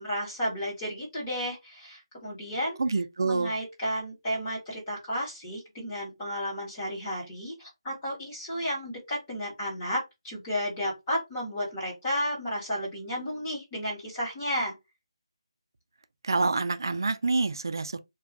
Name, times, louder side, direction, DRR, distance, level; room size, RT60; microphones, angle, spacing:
voice 1, 0.0-2.8 3.2-14.7, equal, 15° left, 1.0 m, -33 dB
voice 2, 2.8-3.5 16.2-18.0, right 3 dB, 45° right, 0.3 m, -27 dB
2.4 x 2.2 x 3.5 m
figure-of-eight pair, 175°, 3 cm